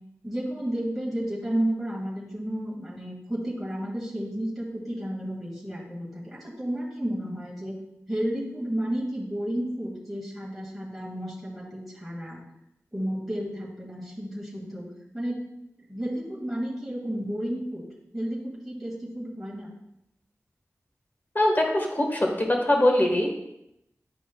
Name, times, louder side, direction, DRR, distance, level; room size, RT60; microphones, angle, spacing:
voice 1, 0.2-7.8 8.1-12.4 12.9-15.5 15.9-17.9 18.1-19.7, equal, ahead, -6 dB, 2.0 m, -32 dB
voice 2, 21.3-23.3, left 1 dB, 35° left, 1 dB, 1.5 m, -22 dB
10.0 x 4.9 x 2.3 m, 0.83 s
wide cardioid pair, 45°, 6 cm